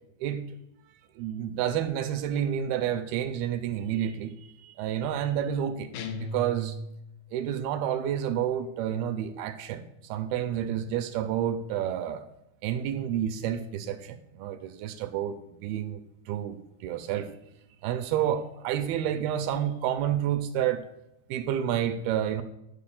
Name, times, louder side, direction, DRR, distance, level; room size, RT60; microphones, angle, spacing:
voice 1, 0.2-0.5 1.2-4.3 4.6-5.9 6.2-6.8 7.3-12.2 12.6-16.0 16.3-17.3 17.8-20.9 21.3-22.4, right 10 dB, 80° right, 10 dB, 2.4 m, -29 dB
sound 1, 5.9-7.3, left 1 dB, 75° left, 1.9 m, -37 dB
11.0 x 4.5 x 7.1 m, 0.85 s
omnidirectional pair, 4.6 m